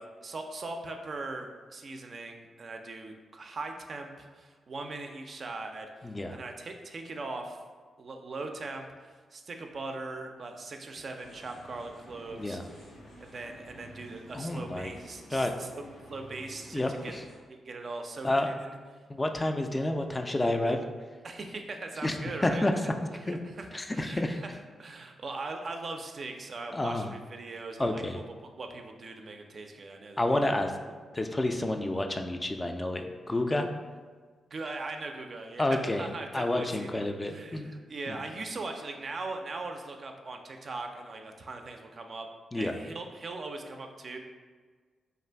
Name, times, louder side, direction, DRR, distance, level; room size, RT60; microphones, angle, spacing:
voice 1, 0.0-7.6 8.0-12.9 13.2-15.8 16.1-17.1 17.5-18.8 21.2-22.7 23.2-24.5 24.8-28.0 28.4-30.4 34.5-42.3 42.5-44.2, right 3 dB, 55° right, 4 dB, 0.3 m, -40 dB
voice 2, 6.0-6.4 12.4-12.6 14.3-14.9 15.3-15.5 16.7-17.2 18.2-18.5 19.1-20.8 22.0-22.2 22.4-22.7 23.3-23.4 23.7-24.4 26.7-27.1 27.8-28.2 30.2-30.7 31.1-33.7 35.6-36.1 36.3-37.7 38.1-38.2 42.5-42.8, left 1 dB, 25° left, 5 dB, 0.3 m, -29 dB
sound 1, 11.2-17.4, equal, 90° left, 0.6 m, -51 dB
2.5 x 2.4 x 3.3 m, 1.5 s
supercardioid pair, 40°, 0 cm